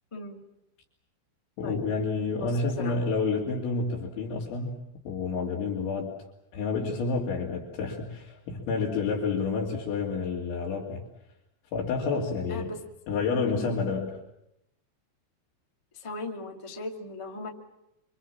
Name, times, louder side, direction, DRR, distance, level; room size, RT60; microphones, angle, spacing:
voice 1, 1.6-6.1 6.5-11.1 11.7-12.7 13.1-14.2, left 4 dB, 90° left, -3 dB, 5.2 m, -29 dB
voice 2, 12.5-12.8 15.9-17.5, left 2 dB, 20° left, 2 dB, 0.7 m, -37 dB
26.5 x 26.0 x 7.4 m, 0.85 s
omnidirectional pair, 5.1 m